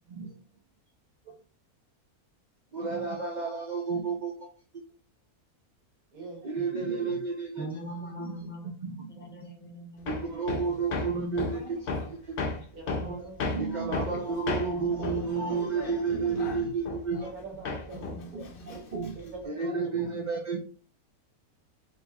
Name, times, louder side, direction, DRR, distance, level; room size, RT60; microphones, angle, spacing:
voice 1, 2.7-4.5 6.4-7.7 8.2-8.5 8.8-9.3 10.0-11.8 12.1-12.3 13.0-17.3 18.3-19.1 19.5-20.6, right 4 dB, 60° right, -1 dB, 0.4 m, -31 dB
voice 2, 6.1-6.4 12.7-13.5 15.2-15.6 17.2-18.3 19.2-20.0, right 3 dB, 75° right, 0 dB, 1.7 m, -44 dB
voice 3, 7.6-8.7 9.2-10.1 18.1-18.7, right 1 dB, 15° left, -1 dB, 0.4 m, -41 dB
Hammer, 10.1-17.4 17.6-19.4, left 3 dB, 65° left, 0.5 m, -35 dB
4.2 x 2.9 x 2.3 m, 0.38 s
omnidirectional pair, 1.6 m